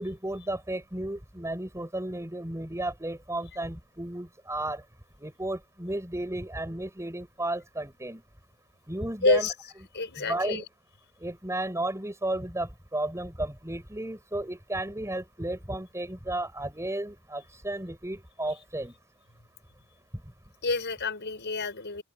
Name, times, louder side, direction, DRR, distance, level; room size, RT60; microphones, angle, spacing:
voice 1, 0.0-4.8 5.2-8.2 8.9-9.5 10.2-10.6 11.2-18.9, right 1 dB, 15° right, 6.9 m, -33 dB
voice 2, 9.2-9.5 9.9-10.6 20.6-22.0, left 3 dB, 55° left, 7.5 m, -28 dB
open air
head